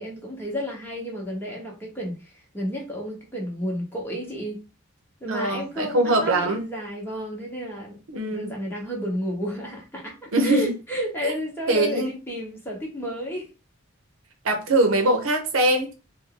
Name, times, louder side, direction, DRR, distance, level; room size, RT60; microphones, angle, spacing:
voice 1, 0.0-4.6 5.2-8.0 8.3-13.5, equal, 10° left, 0.9 m, -31 dB
voice 2, 5.3-6.6 8.1-8.5 10.3-10.7 11.2-11.3 11.7-12.1 14.4-15.9, right 2 dB, 80° right, 0.7 m, -22 dB
2.6 x 2.2 x 3.6 m
head